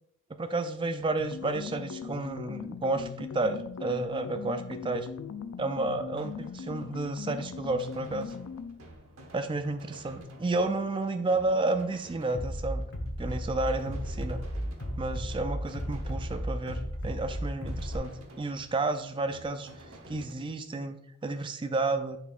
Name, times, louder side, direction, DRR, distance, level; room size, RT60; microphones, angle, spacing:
voice 1, 0.4-5.1 5.6-8.3 9.3-12.9 13.2-14.4 15.0-18.1 18.4-19.7 20.1-21.0 21.2-22.2, right 2 dB, 25° right, 8 dB, 0.4 m, -31 dB
sound 1, 1.2-8.9, left 6 dB, 80° left, 0.4 m, -40 dB
sound 2, 6.1-20.3, right 1 dB, 75° right, 1.1 m, -51 dB
Bass drum, 12.3-18.0, equal, 50° left, 0.8 m, -34 dB
9.7 x 4.1 x 2.4 m, 0.71 s
head